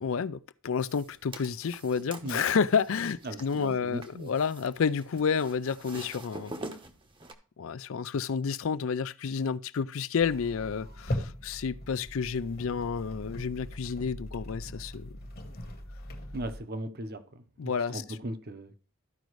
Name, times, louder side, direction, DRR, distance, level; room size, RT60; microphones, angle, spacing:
voice 1, 0.0-6.6 7.6-15.1 17.6-18.0, left 6 dB, 65° left, 0.4 m, -30 dB
sound 1, 0.8-7.3, right 2 dB, 25° right, 0.8 m, -46 dB
voice 2, 3.2-4.3 16.3-18.8, right 1 dB, 45° right, 0.9 m, -38 dB
sound 2, 10.2-16.6, left 1 dB, 45° left, 1.2 m, -40 dB
13.5 x 5.2 x 3.1 m
head